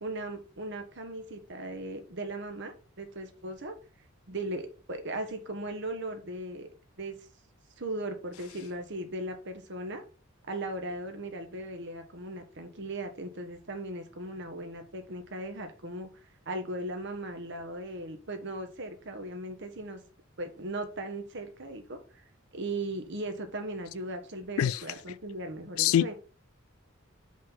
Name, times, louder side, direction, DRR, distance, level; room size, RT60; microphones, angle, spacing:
voice 1, 0.0-3.8 4.3-6.7 7.0-7.2 7.8-10.0 10.5-16.1 16.5-20.0 20.4-22.0 22.5-26.1, right 1 dB, 55° right, 1.2 m, -38 dB
voice 2, 25.8-26.1, left 10 dB, 75° left, 0.3 m, -24 dB
5.1 x 3.9 x 5.5 m
head